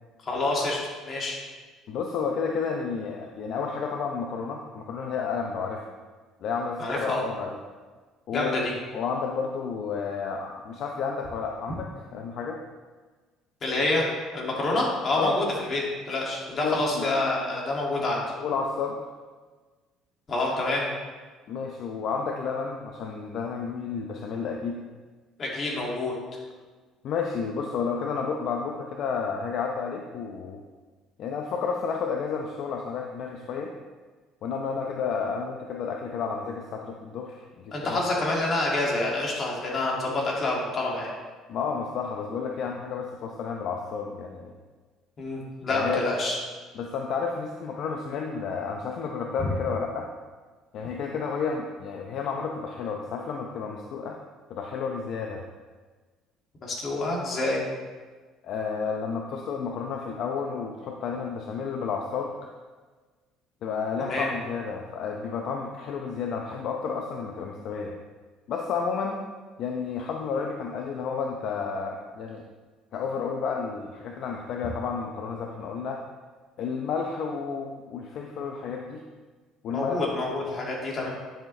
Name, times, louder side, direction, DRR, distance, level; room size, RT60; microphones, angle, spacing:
voice 1, 0.2-0.8 1.1-1.4 6.8-7.2 8.3-8.7 13.6-14.1 14.3-18.2 20.3-20.9 25.4-26.2 37.7-41.1 45.2-46.4 56.6-57.6 64.0-64.3 79.7-81.1, left 2 dB, 35° left, -3 dB, 2.3 m, -27 dB
voice 2, 1.9-5.8 6.4-7.6 8.3-8.6 8.9-12.6 15.2-15.4 16.5-17.1 18.4-19.0 21.5-24.8 27.0-30.6 31.2-33.7 34.4-38.0 41.5-44.5 45.7-46.0 46.7-50.1 50.7-54.2 54.5-55.4 58.4-62.3 63.6-67.9 68.5-69.2 69.6-72.4 72.9-76.0 76.6-79.0 79.6-80.3, left 5 dB, 55° left, 2 dB, 0.7 m, -31 dB
10.5 x 7.1 x 3.3 m, 1.4 s
cardioid pair, 130°, 0 cm